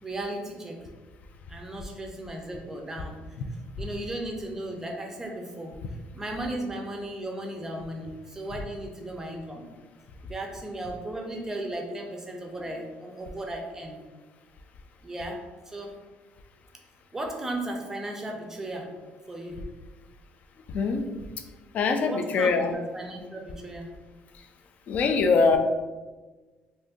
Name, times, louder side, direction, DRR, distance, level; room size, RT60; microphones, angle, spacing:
voice 1, 0.0-0.8 1.5-3.2 3.8-5.8 6.1-9.7 10.2-14.0 15.0-15.9 17.1-18.9 19.3-19.6 22.1-23.9, right 1 dB, 15° right, 2 dB, 0.5 m, -36 dB
voice 2, 20.7-21.0 21.7-22.7 24.3-24.4 24.9-25.6, left 4 dB, 50° left, 6 dB, 0.3 m, -23 dB
2.5 x 2.5 x 3.6 m, 1.3 s
cardioid pair, 160°, 3 cm